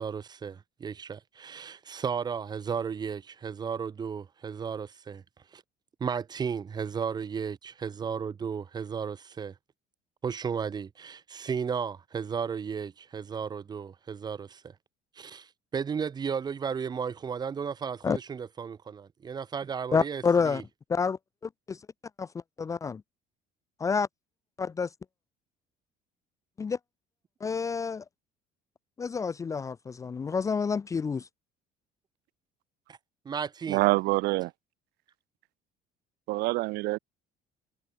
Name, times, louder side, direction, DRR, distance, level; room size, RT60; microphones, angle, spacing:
voice 1, 0.0-5.2 5.5-5.6 6.0-9.5 10.2-14.7 15.2-20.6 32.9-33.0 33.3-33.8, right 6 dB, 25° right, 3.6 m, -34 dB
voice 2, 19.9-20.6 20.9-21.8 22.2-22.3 22.6-23.0 23.8-24.1 24.6-24.9 26.6-26.8 27.4-28.0 29.0-31.3, left 5 dB, 20° left, 0.9 m, -28 dB
voice 3, 33.7-34.5 36.3-37.0, right 21 dB, 75° right, 1.6 m, -26 dB
cardioid pair, 170°, 17 cm